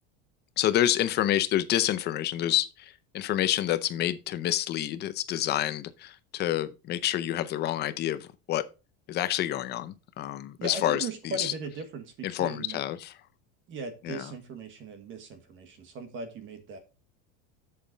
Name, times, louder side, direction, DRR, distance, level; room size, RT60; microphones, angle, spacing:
voice 1, 0.6-8.6 9.1-11.0 11.4-11.5 12.2-13.1 14.0-14.3, left 12 dB, 30° left, 0.6 m, -28 dB
voice 2, 10.6-12.8 13.7-16.8, right 3 dB, 35° right, 1.4 m, -38 dB
7.6 x 7.2 x 4.0 m
cardioid pair, 170°, 36 cm